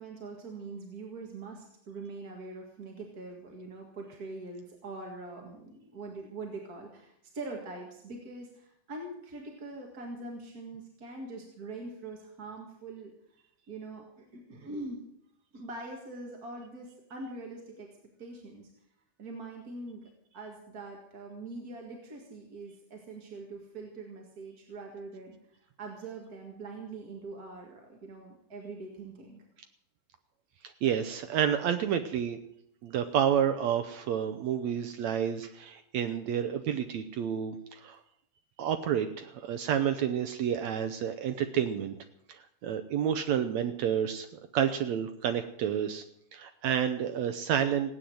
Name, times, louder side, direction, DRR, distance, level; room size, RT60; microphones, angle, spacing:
voice 1, 0.0-13.1 13.7-15.0 15.5-18.7 19.2-20.0 20.3-25.4 25.8-29.4, right 3 dB, 35° right, 1 dB, 1.7 m, -43 dB
voice 2, 30.8-32.4 32.8-38.0 38.6-41.9 42.3-44.3 44.5-46.0 46.3-47.9, right 9 dB, 75° right, 9 dB, 1.7 m, -29 dB
17.0 x 9.4 x 7.8 m, 0.74 s
omnidirectional pair, 4.1 m